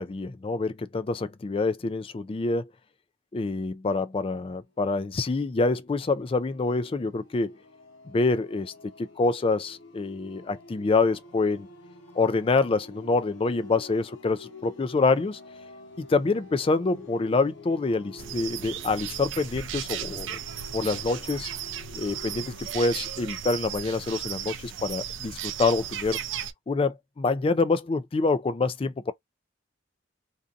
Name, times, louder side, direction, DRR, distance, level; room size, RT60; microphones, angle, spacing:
voice 1, 0.0-2.7 3.3-7.5 8.1-11.7 12.2-15.4 16.0-20.4 20.7-21.5 21.9-26.2 26.7-29.1, left 3 dB, 30° left, 0.3 m, -26 dB
sound 1, 4.8-22.9, left 3 dB, 90° left, 1.0 m, -49 dB
sound 2, 18.2-26.5, right 9 dB, 80° right, 0.4 m, -35 dB
2.7 x 2.4 x 2.4 m
head